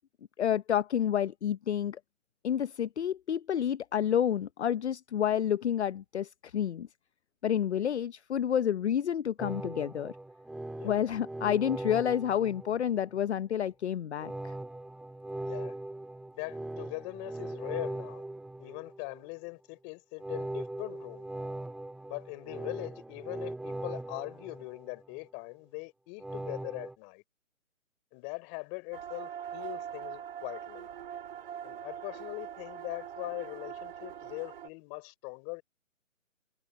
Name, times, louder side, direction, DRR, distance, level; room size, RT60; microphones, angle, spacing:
voice 1, 0.4-2.0 2.4-6.9 7.4-10.1 10.8-14.5, left 9 dB, 55° left, 0.8 m, -29 dB
sound 1, 9.4-13.2 14.2-19.3 20.2-25.2 26.2-26.9, right 2 dB, ahead, 1.9 m, -40 dB
voice 2, 15.4-15.7 16.3-18.2 18.6-21.3 22.1-27.2 28.1-30.9 31.6-35.6, left 33 dB, 20° left, 4.3 m, -41 dB
sound 2, 28.9-34.7, right 9 dB, 45° right, 2.6 m, -42 dB
hypercardioid pair, 160°, 40 cm